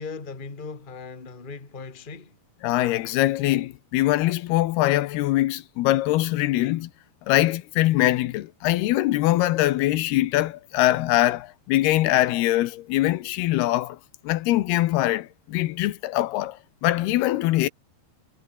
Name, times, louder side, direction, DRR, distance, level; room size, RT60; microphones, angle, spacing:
voice 1, 0.0-2.4, left 4 dB, 15° left, 1.7 m, -38 dB
voice 2, 2.6-6.9 7.3-14.0 14.2-17.7, left 16 dB, 80° left, 2.9 m, -23 dB
omnidirectional pair, 4.6 m